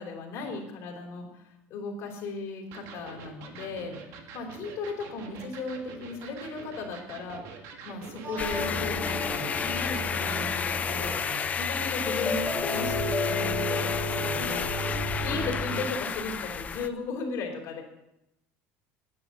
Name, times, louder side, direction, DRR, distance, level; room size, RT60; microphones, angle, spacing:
voice 1, 0.0-4.0 4.3-14.6 15.2-17.8, left 3 dB, 55° left, 2 dB, 3.4 m, -36 dB
Electric guitar, 2.7-11.4, right 5 dB, 65° right, 1.9 m, -45 dB
voice 2, 8.2-9.5 14.0-14.6 14.9-15.2, right 2 dB, 30° right, 3 dB, 3.6 m, -42 dB
sound 1, 8.4-16.9, left 6 dB, 25° left, 0.7 m, -31 dB
sound 2, 8.5-15.8, left 1 dB, 10° left, 3.4 m, -33 dB
10.0 x 9.9 x 7.3 m, 0.85 s
cardioid pair, 135°, 5 cm